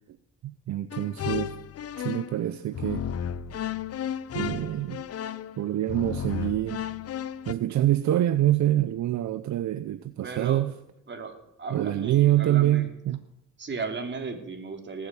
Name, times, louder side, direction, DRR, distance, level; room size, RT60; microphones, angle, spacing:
voice 1, 0.4-1.5 2.0-3.1 4.3-5.0 5.6-6.9 7.5-10.7 11.7-13.2, right 13 dB, 70° right, 12 dB, 0.8 m, -25 dB
sound 1, 0.9-2.4 2.7-7.5, left 9 dB, 55° left, 0.8 m, -33 dB
voice 2, 10.2-10.6 11.1-12.9 13.6-15.1, right 4 dB, 40° right, 5 dB, 3.2 m, -36 dB
19.0 x 7.4 x 9.1 m, 0.81 s
cardioid pair, 90°, 30 cm